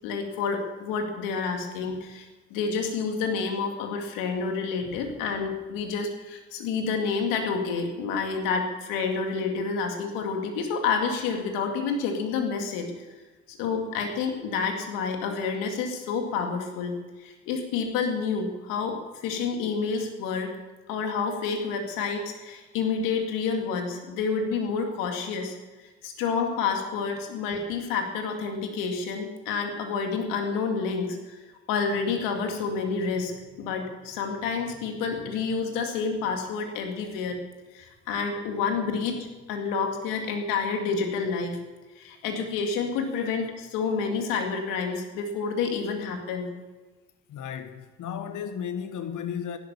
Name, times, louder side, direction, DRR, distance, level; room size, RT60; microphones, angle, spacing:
voice 1, 0.0-13.1 13.5-16.9 17.2-20.5 20.9-25.6 26.0-31.4 31.7-37.4 37.7-41.6 42.0-46.5, left 5 dB, 85° left, 2.2 m, -29 dB
voice 2, 47.3-49.6, left 8 dB, 65° left, 1.2 m, -34 dB
16.0 x 11.5 x 7.0 m
hypercardioid pair, 40°, 32 cm